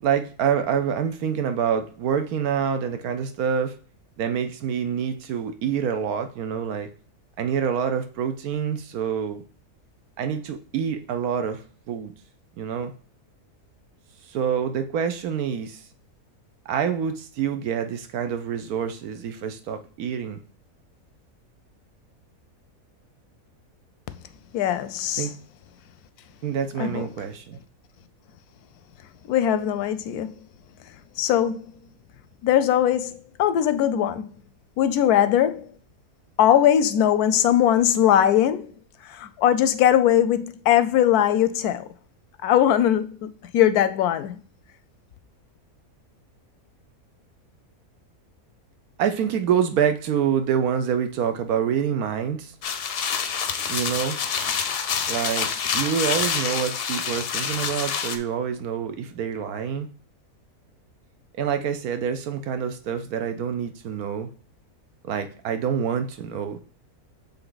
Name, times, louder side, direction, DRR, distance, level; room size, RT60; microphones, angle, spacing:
voice 1, 0.0-3.7 4.2-6.9 7.4-9.4 10.2-11.6 11.9-12.1 12.6-12.9 14.3-15.8 16.7-20.4 25.2-25.3 26.4-27.6 49.0-52.5 53.7-54.2 55.1-59.9 61.4-64.3 65.0-66.6, right 8 dB, 75° right, 1.2 m, -26 dB
voice 2, 24.5-25.3 26.8-27.1 29.3-30.3 31.2-31.6 32.4-34.3 34.8-35.7 36.4-38.7 39.0-41.9 42.4-44.4, left 10 dB, 85° left, 1.1 m, -20 dB
sound 1, 52.6-58.2, left 7 dB, 55° left, 0.6 m, -27 dB
7.1 x 3.5 x 3.9 m
omnidirectional pair, 1.6 m